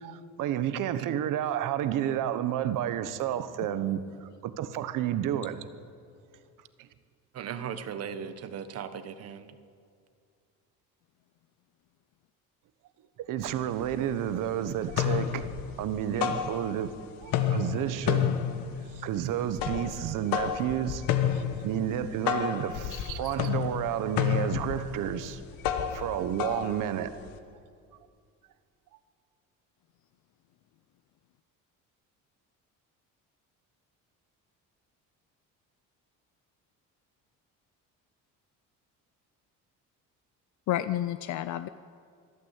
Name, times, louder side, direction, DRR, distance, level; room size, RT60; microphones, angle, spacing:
voice 1, 0.0-5.6 6.8-6.9 13.3-15.5 15.8-16.9 17.2-18.5 18.9-21.0 21.3-25.4 25.9-27.2, right 10 dB, 70° right, 12 dB, 1.3 m, -31 dB
voice 2, 7.3-9.5, right 7 dB, 45° right, 11 dB, 1.3 m, -37 dB
sound 1, 13.4-13.5 13.8-14.5 14.8-17.0 17.2-27.4, left 9 dB, 85° left, 1.5 m, -31 dB
voice 3, 22.9-23.3 40.7-41.7, left 12 dB, 60° left, 12 dB, 0.6 m, -31 dB
25.0 x 12.5 x 8.4 m, 2.2 s
cardioid pair, 160°, 34 cm